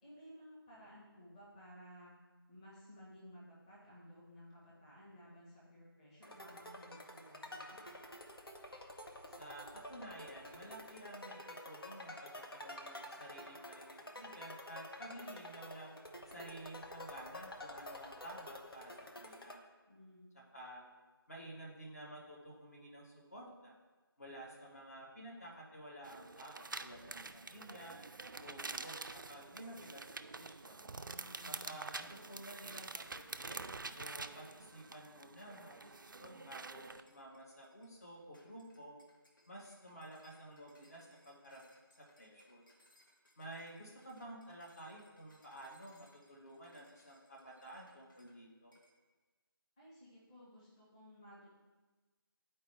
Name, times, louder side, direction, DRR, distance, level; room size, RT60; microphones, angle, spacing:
voice 1, 0.0-2.1 2.5-7.8 19.9-20.3 31.0-31.8 49.8-51.6, equal, 15° left, -8 dB, 1.2 m, -57 dB
sound 1, 6.2-19.6, left 1 dB, 75° left, 0.9 m, -50 dB
voice 2, 9.3-16.0 16.3-19.6 20.3-20.8 21.3-23.7 24.2-28.0 28.4-30.8 31.4-33.6 33.9-39.0 39.5-41.6 42.0-42.6 43.4-48.7, right 1 dB, 40° left, -2 dB, 1.3 m, -52 dB
sound 2, 26.0-37.0, right 3 dB, 55° right, 0.4 m, -47 dB
sound 3, 36.8-48.4 48.7-49.0, left 1 dB, 55° left, 1.4 m, -70 dB
10.5 x 4.4 x 3.3 m, 1.3 s
figure-of-eight pair, 155°, 13 cm